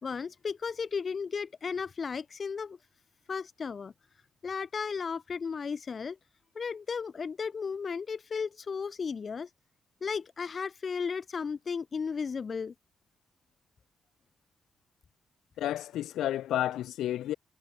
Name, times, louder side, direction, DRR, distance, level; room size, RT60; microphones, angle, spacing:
voice 1, 0.0-2.8 3.3-3.9 4.4-6.2 6.5-9.5 10.0-12.7, left 5 dB, 30° left, 1.2 m, -34 dB
voice 2, 15.6-17.3, left 12 dB, 90° left, 2.0 m, -31 dB
cardioid pair, 160°, 0 cm